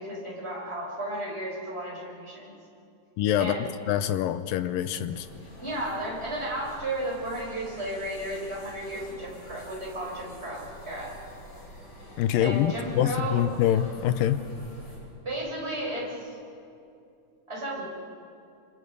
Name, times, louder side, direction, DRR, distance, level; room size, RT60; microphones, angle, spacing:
voice 1, 0.0-2.5 3.4-3.7 5.6-11.2 12.4-13.4 15.2-16.4 17.5-17.9, right 1 dB, 15° right, -3 dB, 5.5 m, -34 dB
voice 2, 3.2-3.6 3.9-5.3 12.2-14.4, left 11 dB, 80° left, 11 dB, 2.4 m, -25 dB
sound 1, 5.1-15.0, equal, 65° left, 9.1 m, -47 dB
29.5 x 26.5 x 5.4 m, 2.6 s
omnidirectional pair, 4.0 m